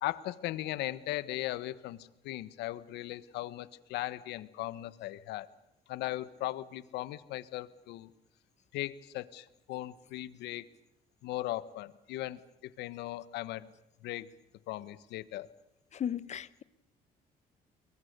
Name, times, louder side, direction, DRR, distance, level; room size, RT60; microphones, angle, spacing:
voice 1, 0.0-5.5 5.9-8.1 8.7-10.7 11.2-13.7 14.0-14.3 14.7-15.5, left 16 dB, 85° left, 1.3 m, -38 dB
voice 2, 15.9-16.6, left 9 dB, 45° left, 1.0 m, -35 dB
28.5 x 23.0 x 6.8 m
cardioid pair, 110°, 17 cm